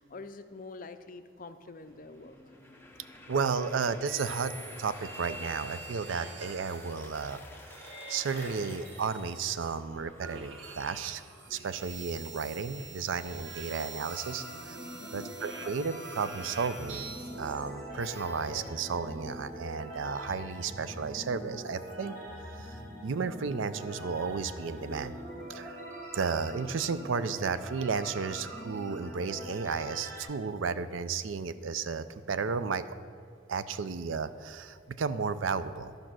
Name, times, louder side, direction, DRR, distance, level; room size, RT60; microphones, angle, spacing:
voice 1, 0.0-2.4 15.0-15.3, left 3 dB, 45° left, 10 dB, 0.5 m, -46 dB
sound 1, 1.8-11.6, left 2 dB, 10° left, 0.8 m, -51 dB
voice 2, 3.3-4.5 4.8-7.4 7.7-7.8 8.1-11.2 11.5-14.8 15.1-22.1 22.6-22.8 23.0-25.2 25.5-25.8 26.1-32.8 33.5-35.9, right 5 dB, 85° right, 13 dB, 0.5 m, -33 dB
sound 2, 4.1-7.0 7.7-9.9 10.2-18.7, right 3 dB, 70° right, 1.2 m, -45 dB
sound 3, 14.0-30.2, equal, 40° right, 1.8 m, -43 dB
12.5 x 5.2 x 6.1 m, 2.3 s
head